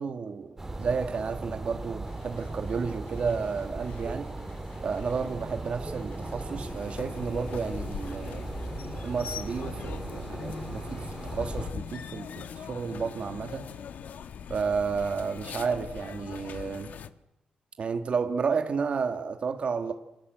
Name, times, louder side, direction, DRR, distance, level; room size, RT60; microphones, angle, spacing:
voice 1, 0.0-4.3 4.8-8.4 9.0-13.7 14.5-16.9 17.8-19.9, right 5 dB, 45° right, 7 dB, 1.8 m, -32 dB
sound 1, 0.6-11.7, right 2 dB, 15° right, 2.7 m, -38 dB
sound 2, 2.0-15.4, left 6 dB, 60° left, 3.4 m, -49 dB
sound 3, 6.3-17.1, left 8 dB, 75° left, 1.4 m, -41 dB
28.5 x 26.0 x 8.0 m, 0.90 s
wide cardioid pair, 165°, 3 cm